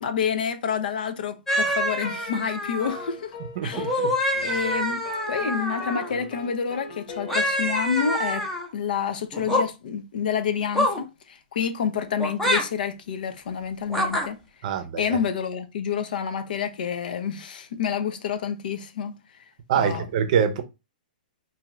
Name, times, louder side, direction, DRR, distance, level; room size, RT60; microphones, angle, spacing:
voice 1, 0.0-3.3 3.6-4.0 4.4-8.5 8.7-14.4 15.0-19.1 19.8-20.0, left 7 dB, 70° left, 0.5 m, -28 dB
sound 1, 1.5-3.1 3.7-6.1 7.3-8.7 9.3-9.7 10.7-11.0 12.2-12.6 13.9-14.3, equal, 5° left, 0.6 m, -26 dB
sound 2, 1.7-7.8, left 3 dB, 50° left, 1.1 m, -41 dB
voice 2, 3.6-4.1 4.4-4.6 14.6-15.2 19.7-20.6, right 8 dB, 50° right, 0.6 m, -25 dB
2.6 x 2.3 x 3.0 m
hypercardioid pair, 145°, 5 cm